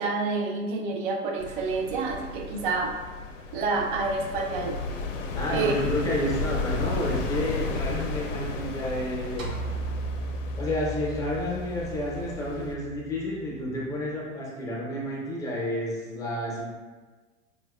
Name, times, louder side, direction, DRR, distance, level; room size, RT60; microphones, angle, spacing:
voice 1, 0.0-3.0 3.5-4.8 5.5-5.7, right 4 dB, 40° right, 2 dB, 0.5 m, -28 dB
sound 1, 1.4-12.7, left 3 dB, 65° left, 0.5 m, -34 dB
voice 2, 5.3-9.5 10.6-16.6, left 1 dB, 10° left, -4 dB, 0.5 m, -30 dB
sound 2, 9.4-13.8, right 2 dB, 80° right, 0.8 m, -36 dB
4.5 x 2.2 x 2.2 m, 1.3 s
figure-of-eight pair, 100°, 39 cm